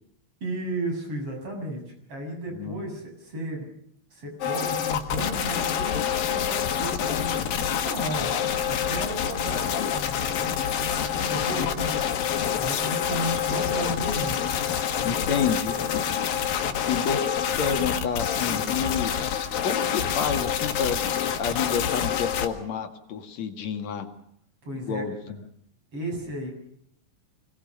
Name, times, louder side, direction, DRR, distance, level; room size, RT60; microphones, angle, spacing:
voice 1, 0.4-3.7 4.1-8.3 8.6-14.4 14.9-15.9 16.6-16.8 24.6-25.0 25.9-26.5, right 1 dB, 40° right, 2 dB, 8.1 m, -34 dB
sound 1, 4.4-22.5, left 8 dB, 75° left, 3.3 m, -27 dB
voice 2, 15.1-16.0 16.9-19.1 19.6-24.1 24.9-25.4, left 6 dB, 55° left, 6 dB, 2.9 m, -29 dB
25.5 x 20.0 x 6.6 m, 0.71 s
omnidirectional pair, 4.2 m